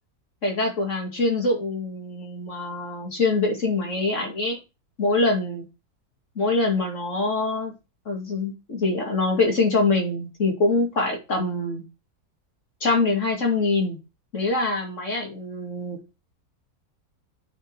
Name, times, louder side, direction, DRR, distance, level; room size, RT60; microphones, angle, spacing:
voice 1, 0.4-4.6 5.0-5.6 6.4-7.7 8.1-11.8 12.8-14.0 14.3-16.0, left 3 dB, 50° left, 1 dB, 2.7 m, -24 dB
9.3 x 5.4 x 4.8 m, 0.28 s
omnidirectional pair, 1.6 m